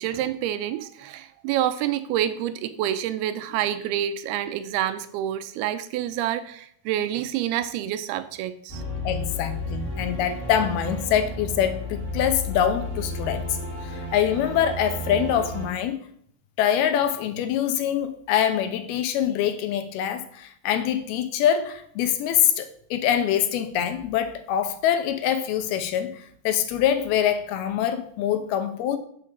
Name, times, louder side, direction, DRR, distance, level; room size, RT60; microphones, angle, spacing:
voice 1, 0.0-8.8, right 11 dB, 80° right, 2.5 m, -28 dB
sound 1, 8.7-15.7, left 1 dB, 20° left, 3.3 m, -32 dB
voice 2, 9.0-16.0 16.6-29.0, left 9 dB, 80° left, 2.7 m, -24 dB
8.4 x 7.2 x 6.0 m
omnidirectional pair, 4.6 m